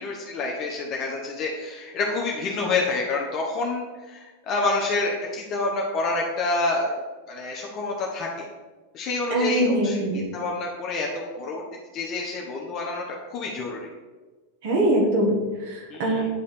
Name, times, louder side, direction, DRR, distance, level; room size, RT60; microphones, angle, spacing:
voice 1, 0.0-7.0 7.3-8.5 8.9-11.6 11.9-13.9 15.9-16.3, left 3 dB, 40° left, -1 dB, 1.0 m, -28 dB
voice 2, 9.3-10.2 14.6-16.2, right 1 dB, 60° right, 0 dB, 1.8 m, -23 dB
9.1 x 3.2 x 4.4 m, 1.3 s
hypercardioid pair, 115°, 0 cm